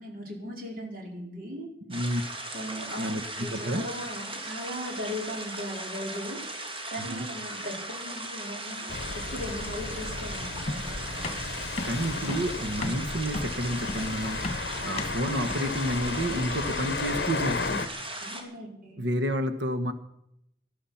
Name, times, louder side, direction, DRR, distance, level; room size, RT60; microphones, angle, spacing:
voice 1, 0.0-1.7 2.5-6.4 6.9-11.3 12.1-12.3 18.2-19.0, equal, 55° right, 0 dB, 4.8 m, -38 dB
sound 1, 1.9-18.4, right 2 dB, 30° right, 2.9 m, -38 dB
voice 2, 1.9-2.2 2.9-3.9 7.0-7.2 11.8-17.9 19.0-19.9, equal, 85° right, 9 dB, 1.3 m, -30 dB
sound 2, 8.9-17.9, left 4 dB, 65° left, 0.8 m, -34 dB
sound 3, 10.7-16.5, left 2 dB, 35° left, 2.0 m, -36 dB
19.0 x 12.5 x 5.9 m, 0.77 s
head